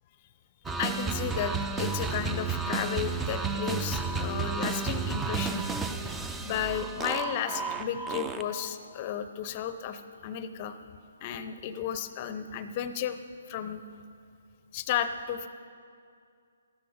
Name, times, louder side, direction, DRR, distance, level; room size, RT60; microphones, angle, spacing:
sound 1, 0.6-8.7, right 4 dB, 10° right, 0.5 m, -32 dB
voice 1, 0.8-5.6 6.4-10.8 11.2-13.2 13.5-13.8 14.7-15.5, left 9 dB, 35° left, 11 dB, 0.6 m, -33 dB
13.5 x 13.0 x 5.0 m, 2.3 s
figure-of-eight pair, 135°, 0 cm